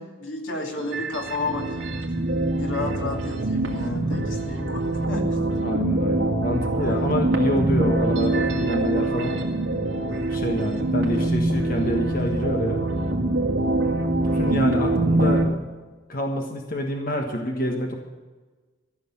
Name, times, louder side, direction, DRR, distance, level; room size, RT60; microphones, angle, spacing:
voice 1, 0.0-1.9 2.6-5.4 6.8-7.1, left 2 dB, 85° left, 1 dB, 2.5 m, -32 dB
sound 1, 0.8-15.4, right 2 dB, 75° right, 2.3 m, -24 dB
voice 2, 5.6-9.4 9.8-12.8 14.2-15.5 16.1-17.9, equal, 45° left, 2 dB, 1.5 m, -27 dB
14.0 x 6.7 x 9.7 m, 1.3 s
head